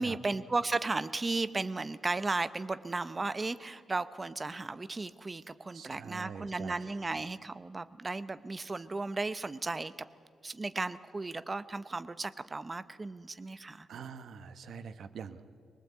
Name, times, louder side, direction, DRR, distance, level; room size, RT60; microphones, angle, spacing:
voice 1, 0.0-9.9 10.4-13.9, right 3 dB, 20° right, 14 dB, 0.6 m, -35 dB
voice 2, 5.7-6.7 13.9-15.4, right 6 dB, 60° right, 11 dB, 1.1 m, -44 dB
23.0 x 19.5 x 8.3 m, 2.2 s
wide cardioid pair, 170°, 0 cm